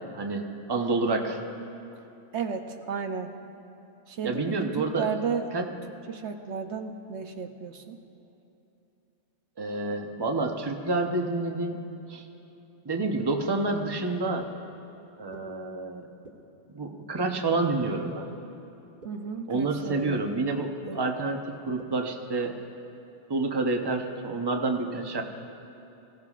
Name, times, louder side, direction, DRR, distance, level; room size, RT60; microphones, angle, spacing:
voice 1, 0.0-1.4 4.2-5.1 5.5-5.7 9.6-11.8 12.1-12.2 12.8-14.5 15.2-16.1 16.7-18.3 19.5-22.6 23.3-25.2, right 3 dB, 25° right, 3 dB, 0.9 m, -28 dB
voice 2, 2.3-3.3 4.1-5.5 5.9-8.0 19.0-20.2 20.8-21.1, right 6 dB, 70° right, 5 dB, 1.0 m, -34 dB
sound 1, 13.5-13.6 14.4-14.5 15.3-15.4 16.2-16.3 17.2-17.3 18.1-18.2 19.0-19.1 19.9-20.0 20.9-21.0 21.8-21.9, right 3 dB, 45° right, 1.6 m, -45 dB
24.5 x 16.5 x 2.5 m, 2.9 s
omnidirectional pair, 1.2 m